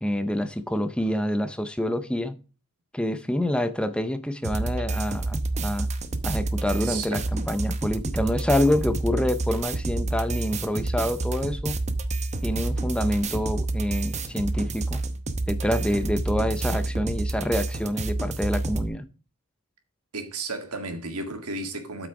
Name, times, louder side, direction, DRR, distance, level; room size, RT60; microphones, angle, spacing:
voice 1, 0.0-2.4 2.9-5.9 6.2-11.8 12.4-15.0 15.5-19.1, left 1 dB, 5° left, 0.6 m, -27 dB
sound 1, 4.4-18.9, right 2 dB, 30° right, 0.8 m, -29 dB
voice 2, 6.7-7.3 20.1-22.1, right 3 dB, 85° right, 1.8 m, -33 dB
8.3 x 6.0 x 4.7 m
head